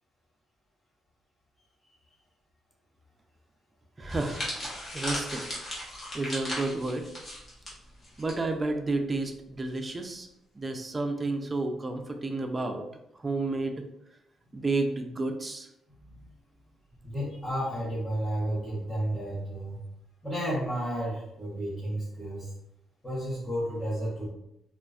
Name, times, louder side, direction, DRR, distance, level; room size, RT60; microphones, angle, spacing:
voice 1, 4.0-4.5 4.9-5.4 6.1-7.0 8.2-10.3 10.6-12.8 13.2-13.8 14.5-15.7, right 2 dB, 25° right, 5 dB, 0.4 m, -31 dB
sound 1, 4.1-8.3 8.6-8.9 9.7-10.0, left 1 dB, 35° left, 1.0 m, -37 dB
voice 2, 17.0-19.8 20.2-22.5 23.0-24.3, equal, 15° left, -10 dB, 0.9 m, -32 dB
2.3 x 2.3 x 2.3 m, 0.82 s
cardioid pair, 90°, 0 cm